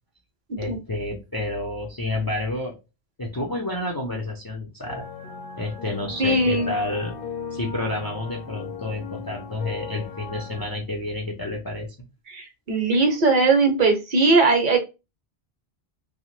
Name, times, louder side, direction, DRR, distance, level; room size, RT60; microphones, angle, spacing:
voice 1, 0.6-2.8 3.2-5.0 5.6-7.2 7.5-11.9, left 2 dB, 35° left, 0 dB, 0.4 m, -29 dB
sound 1, 4.9-10.7, left 5 dB, 65° left, 0.7 m, -37 dB
voice 2, 6.2-6.7 12.3-14.8, right 3 dB, 55° right, 5 dB, 0.8 m, -19 dB
2.8 x 2.1 x 3.0 m, 0.27 s
omnidirectional pair, 1.0 m